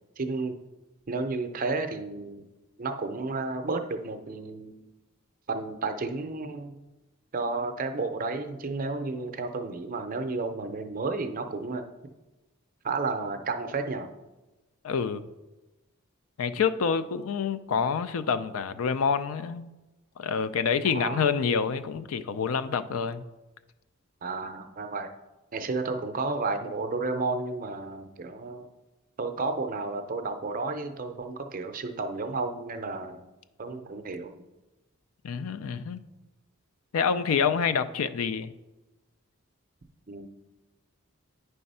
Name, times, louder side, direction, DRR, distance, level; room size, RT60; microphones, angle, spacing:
voice 1, 0.2-0.6 1.1-2.5 2.8-4.9 5.5-6.8 7.3-11.8 12.8-14.1 20.9-21.3 24.2-25.1 25.5-28.7 29.2-33.2 33.6-34.3 40.1-40.3, right 3 dB, 40° right, 6 dB, 0.5 m, -32 dB
voice 2, 14.8-15.3 16.4-19.7 20.2-23.2 35.2-36.0 36.9-38.5, left 6 dB, 75° left, 12 dB, 0.4 m, -27 dB
9.4 x 3.4 x 5.4 m, 1.1 s
head